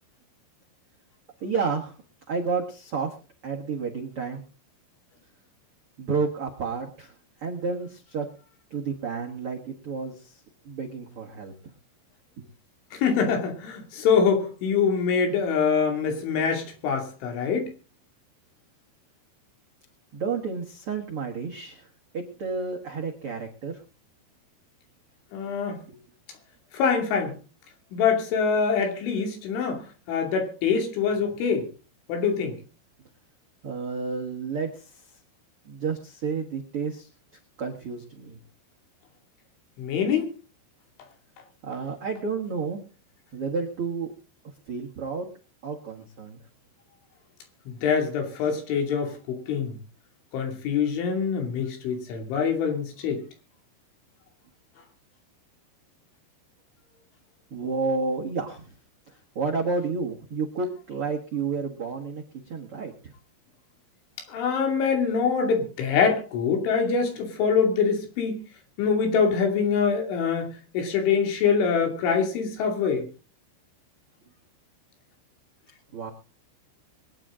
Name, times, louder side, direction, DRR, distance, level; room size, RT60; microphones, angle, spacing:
voice 1, 1.4-2.0 2.3-3.1 3.4-4.4 6.0-7.1 7.4-8.2 8.7-10.4 10.6-11.5 12.4-12.5 20.1-21.9 22.1-23.8 25.9-26.0 33.6-34.9 35.6-37.1 37.6-38.4 41.6-42.8 43.3-44.1 44.7-45.3 45.6-46.4 57.5-58.7 59.3-62.2 62.5-62.9 75.9-76.1, right 4 dB, 80° right, 1.2 m, -30 dB
voice 2, 12.9-17.7 25.3-25.8 26.7-27.4 27.9-29.8 30.1-31.7 32.1-32.5 39.8-40.3 47.7-49.8 50.3-53.2 64.3-68.4 68.8-73.1, left 6 dB, 75° left, 5.1 m, -24 dB
23.0 x 10.0 x 3.8 m
omnidirectional pair, 5.5 m